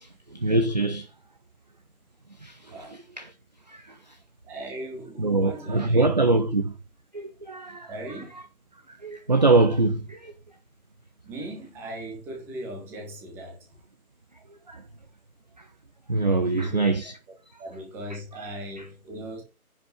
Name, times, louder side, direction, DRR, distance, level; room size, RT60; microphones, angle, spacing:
voice 1, 0.0-1.1 2.4-2.8 3.2-3.3 3.7-4.2 5.2-6.7 7.1-8.1 8.9-10.3 14.7-14.8 16.1-17.2, right 3 dB, 30° right, 0.6 m, -24 dB
voice 2, 4.4-6.5 7.9-8.4 11.2-13.7 16.4-16.9 17.3-19.4, right 1 dB, 5° right, 1.4 m, -39 dB
10.5 x 5.6 x 5.4 m
figure-of-eight pair, 155°, 44 cm